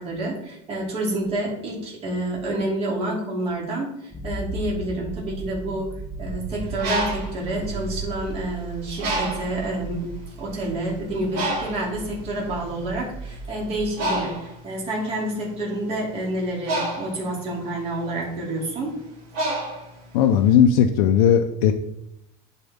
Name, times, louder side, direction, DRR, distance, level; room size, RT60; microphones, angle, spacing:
voice 1, 0.0-5.9 6.2-18.9, right 1 dB, 35° right, -3 dB, 2.7 m, -28 dB
sound 1, 4.1-14.2, right 3 dB, 15° left, 1.0 m, -36 dB
Bird, 6.6-8.4 9.0-9.7 10.3-10.5 10.7-20.5, right 1 dB, 50° right, 2.7 m, -30 dB
voice 2, 20.1-21.7, left 8 dB, 80° left, 4 dB, 0.7 m, -17 dB
11.0 x 4.6 x 3.6 m, 0.80 s
cardioid pair, 165°, 18 cm